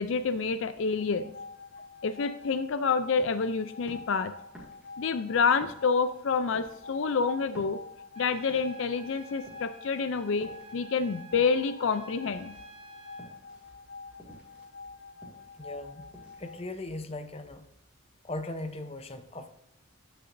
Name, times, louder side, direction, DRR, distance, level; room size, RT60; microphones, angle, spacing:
voice 1, 0.0-1.3 2.0-4.3 5.0-7.8 8.2-12.5, left 5 dB, 65° left, 11 dB, 0.4 m, -28 dB
sound 1, 0.8-16.6, left 4 dB, 85° left, 1.9 m, -47 dB
sound 2, 3.2-11.9 12.1-17.1, right 1 dB, 5° right, 2.0 m, -53 dB
Trumpet, 8.1-13.4, right 4 dB, 30° right, 1.1 m, -52 dB
voice 2, 15.6-16.0 16.4-17.6 18.2-19.5, left 2 dB, 30° left, 8 dB, 0.7 m, -38 dB
13.5 x 6.7 x 2.6 m, 0.80 s
head